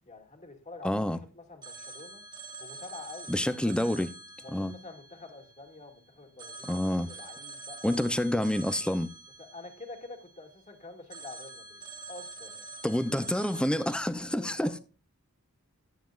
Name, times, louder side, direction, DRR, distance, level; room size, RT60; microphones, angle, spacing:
voice 1, 0.0-1.0 1.3-2.2 2.6-3.7 4.4-8.0 9.4-11.8 12.1-12.7 14.4-14.8, left 2 dB, 35° left, 2.3 m, -47 dB
voice 2, 0.8-1.2 3.3-4.1 4.5-4.7 6.7-7.1 7.8-9.1 12.8-14.8, left 1 dB, 5° left, 0.7 m, -28 dB
Telephone, 1.6-5.9 6.4-10.6 11.1-14.0, right 3 dB, 20° right, 2.1 m, -46 dB
12.0 x 9.4 x 2.5 m
head